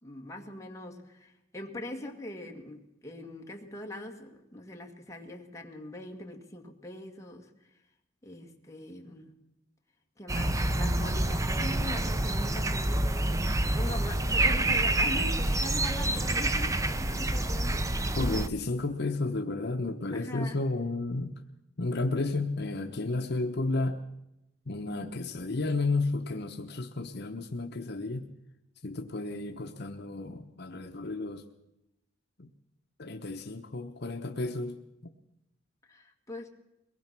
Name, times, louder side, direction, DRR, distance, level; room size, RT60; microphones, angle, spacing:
voice 1, 0.0-7.5 8.2-9.3 10.2-17.9 20.1-20.6 35.8-36.5, left 1 dB, 15° left, 2 dB, 2.0 m, -42 dB
sound 1, 10.3-18.5, right 1 dB, 15° right, 0.7 m, -27 dB
voice 2, 18.2-21.4 21.8-24.0 24.7-28.3 28.8-31.4 32.4-32.5 33.0-34.8 35.0-35.1, left 2 dB, 60° left, 5 dB, 1.0 m, -32 dB
22.5 x 19.0 x 6.1 m, 0.88 s
head